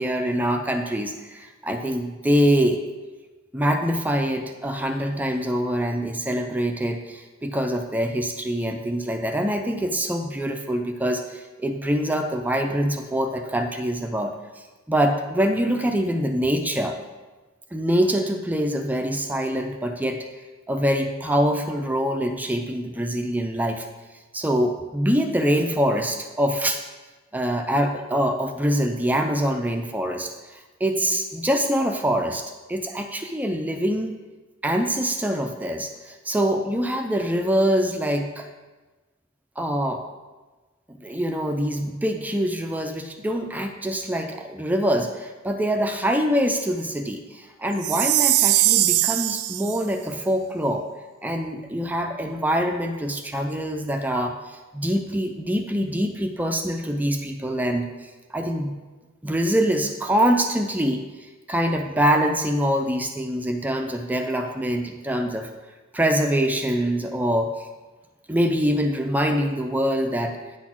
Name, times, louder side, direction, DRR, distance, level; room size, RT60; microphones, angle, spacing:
voice 1, 0.0-2.8 3.5-17.0 17.7-20.3 20.7-23.9 24.3-26.8 27.3-34.2 34.6-38.5 39.6-40.0 40.9-50.8 51.2-58.7 59.2-61.0 61.5-65.5 65.9-67.7 68.3-70.4, equal, 10° right, 4 dB, 0.4 m, -24 dB
Chime, 47.8-49.8, right 16 dB, 80° right, 0.3 m, -20 dB
9.8 x 4.2 x 5.9 m, 1.3 s
head